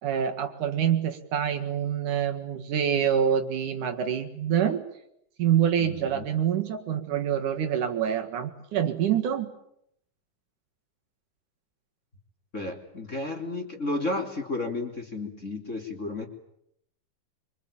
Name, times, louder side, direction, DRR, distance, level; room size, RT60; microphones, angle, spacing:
voice 1, 0.0-4.9 5.4-9.5, right 9 dB, 65° right, 5 dB, 3.2 m, -26 dB
voice 2, 5.8-6.2 12.5-16.3, left 2 dB, 20° left, 3 dB, 3.2 m, -32 dB
26.5 x 25.0 x 8.9 m, 0.76 s
omnidirectional pair, 3.9 m